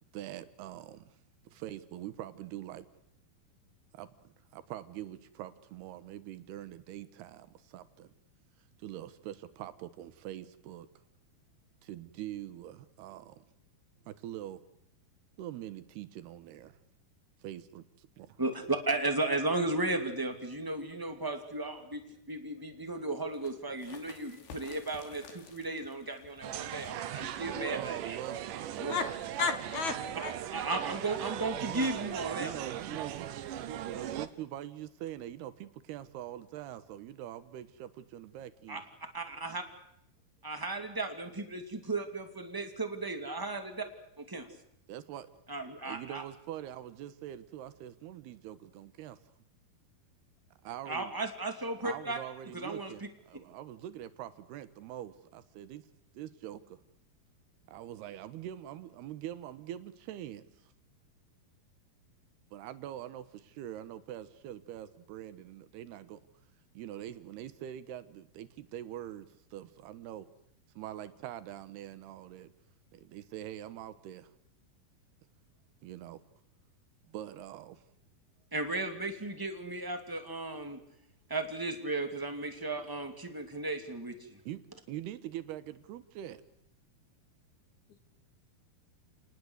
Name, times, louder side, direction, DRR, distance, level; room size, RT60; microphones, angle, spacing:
voice 1, 0.1-1.1 1.5-2.9 3.9-8.1 8.8-10.9 11.8-13.4 14.1-14.6 15.4-16.8 17.4-18.4 27.7-28.4 28.9-29.1 31.6-31.9 32.3-33.3 33.8-38.8 44.9-45.3 45.8-49.2 50.6-51.1 51.8-55.8 56.1-56.8 57.7-60.7 62.5-66.2 66.7-70.3 70.8-72.5 72.9-74.3 75.8-76.2 77.1-77.8 84.5-84.6 84.9-86.4, right 12 dB, 90° right, 3.3 m, -44 dB
voice 2, 18.4-28.2 28.8-28.9 30.5-32.6 38.7-38.8 39.1-39.6 40.4-43.9 44.2-44.5 45.5-46.2 50.9-52.2 52.5-52.9 78.5-80.8 81.3-84.4, right 2 dB, 5° right, 1.8 m, -35 dB
sound 1, 23.2-28.6, left 5 dB, 90° left, 4.6 m, -54 dB
sound 2, 26.4-34.3, right 11 dB, 65° right, 2.4 m, -38 dB
voice 3, 29.4-30.3, left 5 dB, 60° left, 2.3 m, -32 dB
30.0 x 19.5 x 8.2 m
omnidirectional pair, 4.5 m